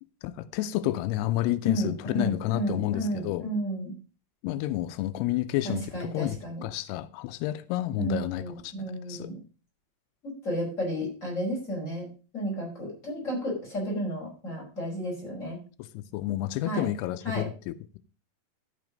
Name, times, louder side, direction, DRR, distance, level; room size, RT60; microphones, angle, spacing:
voice 1, 0.2-3.5 4.4-8.7 9.1-9.3 15.9-18.0, left 14 dB, 90° left, 2.7 m, -30 dB
voice 2, 1.6-3.9 5.6-6.6 8.0-9.4 10.2-12.1 12.3-15.6 16.6-16.9 17.2-17.5, equal, 20° left, 5.3 m, -32 dB
12.5 x 5.9 x 5.1 m
omnidirectional pair, 4.6 m